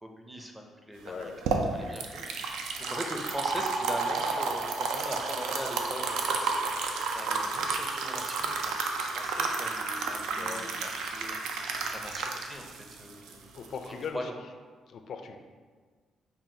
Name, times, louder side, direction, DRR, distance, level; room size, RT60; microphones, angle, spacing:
voice 1, 0.0-1.3 1.7-13.5 13.8-14.4, equal, 10° right, 2 dB, 0.5 m, -41 dB
voice 2, 1.0-1.4 7.5-7.7 10.3-10.7 13.5-14.3 14.9-15.4, left 5 dB, 60° left, 6 dB, 0.3 m, -39 dB
sound 1, 1.1-14.1, right 4 dB, 85° right, 0.4 m, -32 dB
5.5 x 2.3 x 2.7 m, 1.5 s
cardioid pair, 90°, 0 cm